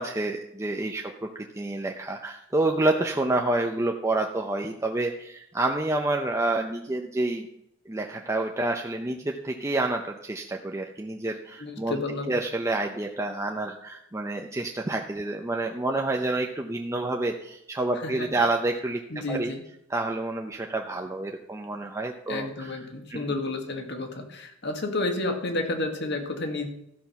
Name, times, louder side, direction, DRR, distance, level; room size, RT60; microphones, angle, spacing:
voice 1, 0.0-7.5 7.9-12.0 12.3-19.0 19.3-19.5 19.9-22.8 23.1-23.2, right 2 dB, 15° right, 2 dB, 0.6 m, -28 dB
voice 2, 11.6-12.3 18.0-18.3 19.1-19.6 22.3-26.7, left 2 dB, 55° left, 4 dB, 1.6 m, -31 dB
13.5 x 6.1 x 5.8 m, 0.77 s
head